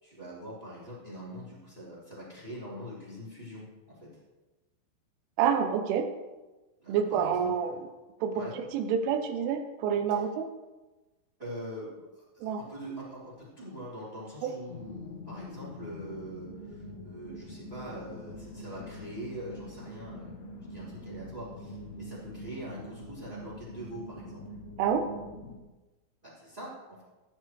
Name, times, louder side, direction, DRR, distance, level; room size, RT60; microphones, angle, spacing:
voice 1, 0.0-3.6 4.0-4.1 6.8-7.7 8.3-8.5 10.1-10.2 11.4-24.4 26.2-27.0, equal, 10° right, -8 dB, 2.9 m, -43 dB
voice 2, 5.4-6.1 6.9-7.8 8.2-10.5 12.4-12.6 14.4-14.5 24.8-25.1, right 7 dB, 80° right, 7 dB, 3.1 m, -28 dB
sound 1, 14.7-25.6, left 1 dB, 80° left, 2.3 m, -44 dB
15.0 x 10.0 x 3.2 m, 1.1 s
omnidirectional pair, 5.8 m